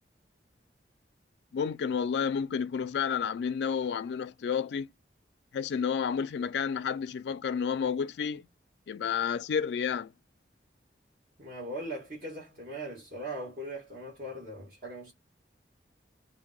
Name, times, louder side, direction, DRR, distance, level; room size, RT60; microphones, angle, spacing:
voice 1, 1.5-4.9 5.5-8.5 8.9-10.1, left 7 dB, 75° left, 0.3 m, -30 dB
voice 2, 11.4-15.1, right 1 dB, 50° right, 1.1 m, -40 dB
2.7 x 2.0 x 3.6 m
head